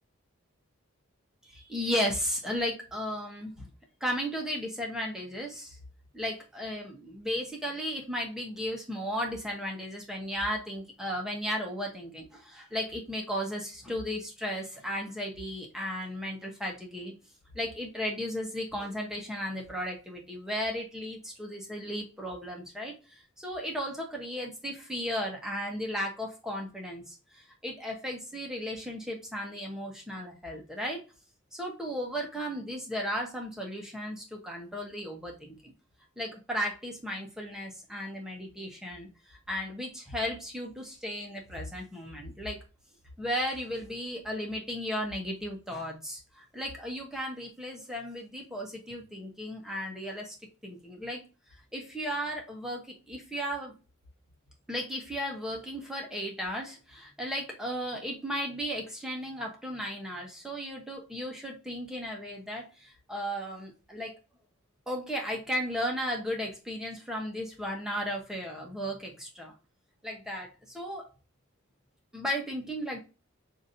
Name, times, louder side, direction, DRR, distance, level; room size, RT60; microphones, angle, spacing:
voice 1, 1.4-3.7 4.0-5.8 6.1-17.1 17.5-31.0 31.5-35.7 36.2-42.6 43.2-50.3 50.6-51.2 51.7-53.7 54.7-64.1 64.9-69.5 70.0-71.1 72.1-73.0, equal, 5° right, -1 dB, 1.0 m, -35 dB
6.0 x 2.7 x 2.6 m, 0.32 s
head